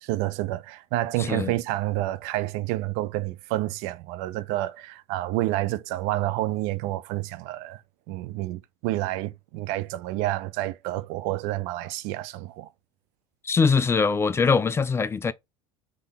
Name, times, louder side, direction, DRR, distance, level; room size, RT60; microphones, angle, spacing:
voice 1, 0.0-7.8 8.1-12.7, right 16 dB, 70° right, 0.5 m, -29 dB
voice 2, 1.2-1.5 13.4-15.3, left 5 dB, 20° left, 0.3 m, -22 dB
3.6 x 3.3 x 3.9 m
supercardioid pair, 110°, 14 cm